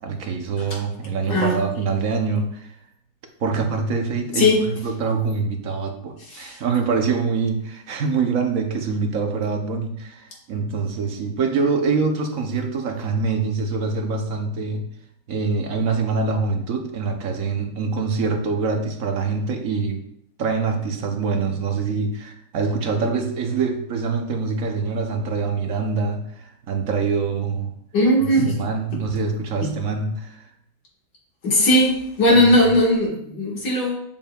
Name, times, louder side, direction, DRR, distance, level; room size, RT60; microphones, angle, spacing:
voice 1, 0.0-2.7 3.4-14.9 15.3-20.0 20.4-27.7 28.5-30.5 32.3-32.4, right 4 dB, 55° right, 4 dB, 1.1 m, -25 dB
voice 2, 4.3-4.7 6.3-6.6 27.9-28.6 28.9-29.0 29.6-29.8 31.4-34.0, left 1 dB, 65° left, -3 dB, 2.2 m, -18 dB
7.3 x 7.0 x 2.3 m, 0.72 s
omnidirectional pair, 1.9 m